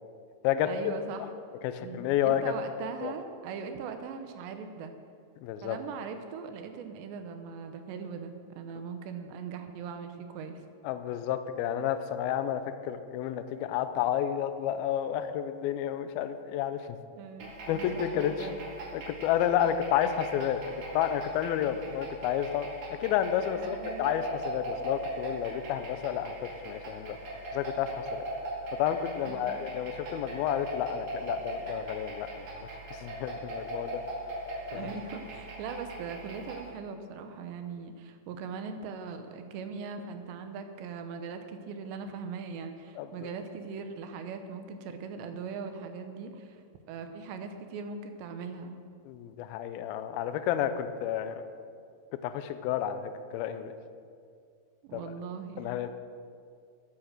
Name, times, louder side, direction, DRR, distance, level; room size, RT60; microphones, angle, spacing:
voice 1, 0.6-1.3 1.8-4.9 5.6-10.6 17.1-18.6 23.5-24.3 29.2-29.7 34.7-46.6 46.9-48.8 54.8-55.7, right 5 dB, 80° right, 7 dB, 3.1 m, -40 dB
voice 2, 1.6-2.4 3.0-3.1 5.4-5.8 10.8-17.0 17.7-18.5 18.9-27.2 27.5-28.2 28.7-32.7 33.0-34.0 34.7-34.9 43.0-43.1 49.1-51.4 52.2-53.7 54.9-55.1 55.6-55.9, left 10 dB, 80° left, 10 dB, 2.2 m, -31 dB
sound 1, 17.4-36.7, right 1 dB, 55° right, 3.6 m, -40 dB
15.0 x 8.8 x 6.6 m, 2.2 s
omnidirectional pair, 5.0 m